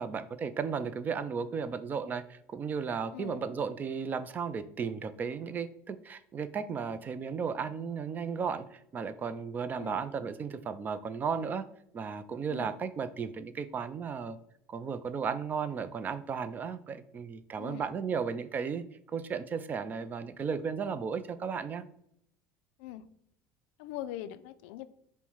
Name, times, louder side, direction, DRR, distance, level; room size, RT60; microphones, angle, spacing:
voice 1, 0.0-11.6 11.9-14.4 14.7-21.8, right 6 dB, 30° right, 13 dB, 0.4 m, -35 dB
voice 2, 3.1-3.4 9.8-10.0 12.5-12.7 17.6-17.9 22.8-23.0 23.8-24.9, left 12 dB, 85° left, 13 dB, 0.3 m, -42 dB
5.4 x 2.1 x 4.5 m, 0.71 s
cardioid pair, 125°, 6 cm